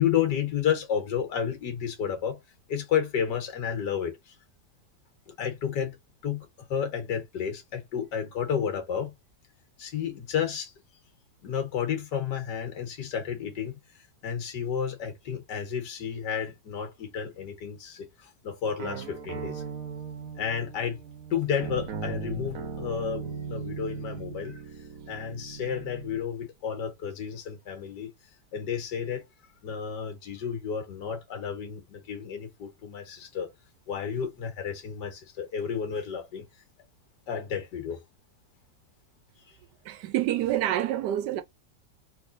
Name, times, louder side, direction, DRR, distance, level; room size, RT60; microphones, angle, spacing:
voice 1, 0.0-2.4 2.7-4.3 5.4-6.0 6.2-9.1 9.8-10.7 11.4-19.6 20.4-21.0 21.3-24.6 25.1-28.1 28.5-29.2 29.6-33.5 33.9-36.4 37.3-38.0 39.5-39.6, left 8 dB, 80° left, 1.9 m, -31 dB
sound 1, 18.8-26.2, right 5 dB, 60° right, 1.1 m, -38 dB
voice 2, 39.8-41.4, right 12 dB, 80° right, 1.2 m, -27 dB
3.5 x 3.2 x 2.5 m
omnidirectional pair, 1.8 m